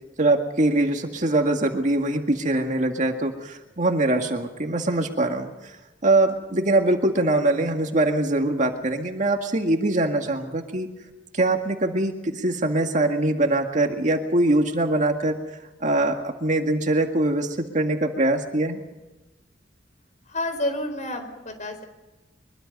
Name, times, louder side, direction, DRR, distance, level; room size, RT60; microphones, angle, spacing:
voice 1, 0.2-5.8 6.0-10.9 11.3-15.4 15.8-18.8, right 2 dB, 40° right, 4 dB, 2.0 m, -23 dB
voice 2, 20.3-21.8, left 1 dB, 40° left, 6 dB, 4.8 m, -29 dB
24.0 x 22.5 x 5.5 m, 1.1 s
head